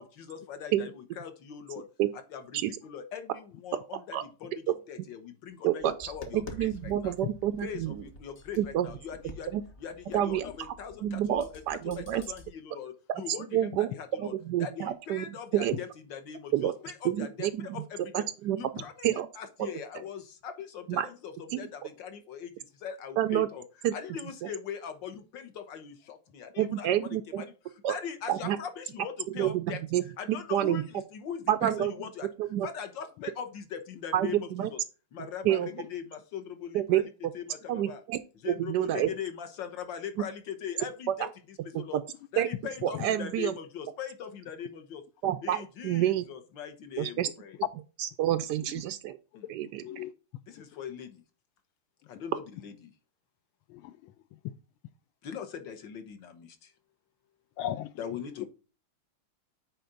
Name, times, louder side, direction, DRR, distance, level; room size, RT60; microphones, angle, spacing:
voice 1, 0.0-1.9 2.1-7.1 7.6-14.3 14.6-18.3 18.6-19.1 19.3-29.8 30.2-32.3 32.6-34.8 35.1-37.1 37.3-38.0 38.4-42.0 42.3-45.0 45.4-47.6 49.3-49.5 50.5-51.2 52.1-52.9 55.2-56.7 58.0-58.5, left 7 dB, 60° left, 1.8 m, -41 dB
voice 2, 5.6-7.9 8.6-8.9 9.5-9.6 10.1-10.7 11.0-12.2 13.5-13.9 14.2-15.2 15.5-15.8 16.5-16.7 17.1-17.7 18.1-18.6 19.0-19.3 19.6-19.7 20.9-21.1 23.2-23.5 23.8-23.9 26.6-27.4 27.8-27.9 28.3-28.6 29.4-30.0 30.3-30.8 31.5-31.9 32.4-32.7 34.1-34.7 35.4-35.7 36.7-37.1 37.7-38.2 38.4-39.1 41.2-41.3 42.4-42.5 42.8-43.5 45.2-46.3 47.0-47.3 48.0-49.2 49.5-49.8, right 12 dB, 80° right, 0.9 m, -28 dB
Tap, 5.8-12.5, left 2 dB, 35° left, 1.4 m, -48 dB
voice 3, 48.5-48.8 49.8-50.1 50.6-50.7 53.7-54.4 57.6-58.4, left 11 dB, 80° left, 1.5 m, -39 dB
9.3 x 4.4 x 3.9 m
omnidirectional pair, 2.3 m